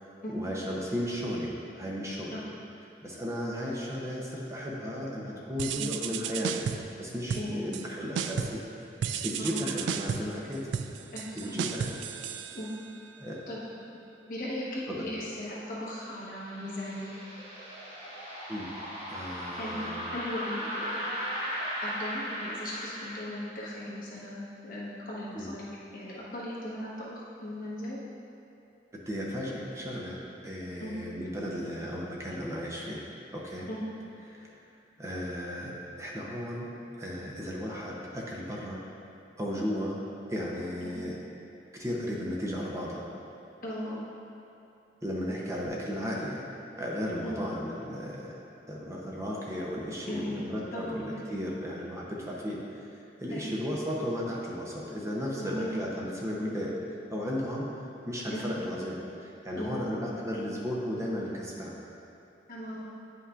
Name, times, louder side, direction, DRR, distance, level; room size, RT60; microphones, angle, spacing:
voice 1, 0.0-1.5 1.8-2.4 3.0-6.7 7.0-8.6 9.1-10.7 11.4-12.0 13.2-13.4 14.9-15.0 18.5-18.7 19.1-20.0 25.3-25.5 29.1-33.0 33.3-33.7 34.3-34.5 35.0-36.7 37.0-38.8 39.4-40.0 40.3-41.1 41.7-43.0 45.0-46.4 46.8-48.4 48.7-56.7 57.1-57.7 58.1-61.8, equal, 15° right, -4 dB, 0.7 m, -35 dB
sound 1, 5.6-7.0 7.3-7.9 8.2-8.7 9.0-13.0, right 7 dB, 85° right, 0.3 m, -34 dB
voice 2, 9.4-9.7 11.1-11.5 12.5-12.7 13.5-13.6 14.3-17.2 19.6-19.8 20.1-21.1 21.5-28.0 30.8-30.9 33.7-33.8 40.8-40.9 43.6-44.0 47.2-47.4 50.0-50.4 50.7-51.2 53.3-53.4 55.4-55.7 58.3-58.4 59.5-59.8 62.5-63.0, left 1 dB, 50° left, -7 dB, 1.2 m, -37 dB
sound 2, 15.5-23.2, equal, 35° right, 1.4 m, -37 dB
9.3 x 5.5 x 2.5 m, 2.7 s
head